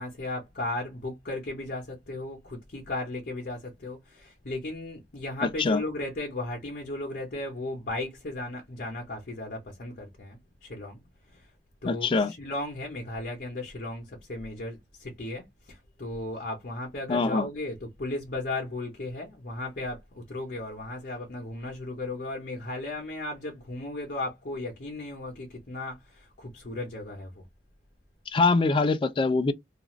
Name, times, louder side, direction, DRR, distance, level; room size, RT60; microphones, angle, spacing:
voice 1, 0.0-11.0 11.3-11.5 11.8-27.4, left 2 dB, 55° left, 0.7 m, -36 dB
voice 2, 5.4-5.8 11.8-12.3 17.1-17.5 28.3-29.5, left 3 dB, 30° left, 0.3 m, -24 dB
2.4 x 2.4 x 3.0 m
head